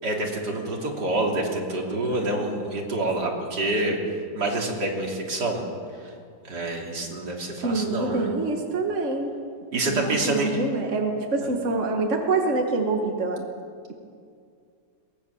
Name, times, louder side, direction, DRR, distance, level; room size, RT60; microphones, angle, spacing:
voice 1, 0.0-4.0 4.3-5.6 5.9-6.1 6.4-8.3 9.7-10.6, right 2 dB, 75° right, -1 dB, 3.7 m, -27 dB
voice 2, 7.6-9.3 9.9-13.5, right 3 dB, 45° right, 2 dB, 2.0 m, -26 dB
22.5 x 19.0 x 7.2 m, 2.3 s
omnidirectional pair, 1.8 m